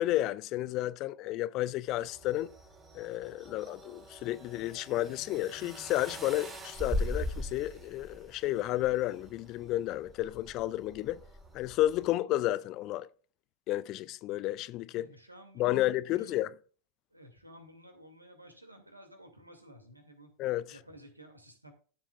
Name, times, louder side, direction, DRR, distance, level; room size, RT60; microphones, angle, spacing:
voice 1, 0.0-2.5 2.9-11.2 11.5-13.1 13.7-15.1 15.6-16.5 20.4-20.6, left 15 dB, 40° left, 0.5 m, -31 dB
sound 1, 1.9-12.1, equal, 15° right, 3.1 m, -41 dB
voice 2, 14.9-16.5 17.1-20.3 20.7-21.7, right 1 dB, 85° right, 2.2 m, -54 dB
14.5 x 7.2 x 2.4 m
figure-of-eight pair, 90°, 0 cm